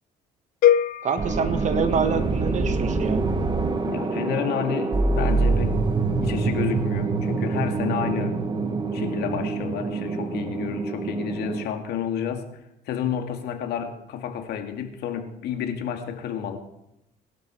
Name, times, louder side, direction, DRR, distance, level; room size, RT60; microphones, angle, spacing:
sound 1, 0.6-2.7, left 10 dB, 60° left, 0.5 m, -24 dB
voice 1, 1.0-3.3, right 5 dB, 45° right, 9 dB, 1.7 m, -26 dB
sound 2, 1.2-11.6, right 3 dB, 25° right, 1.5 m, -25 dB
voice 2, 3.9-5.8 6.2-8.4 8.9-12.6 12.9-16.6, left 8 dB, 75° left, 5 dB, 2.2 m, -30 dB
20.5 x 12.0 x 4.7 m, 0.81 s
cardioid pair, 110°, 17 cm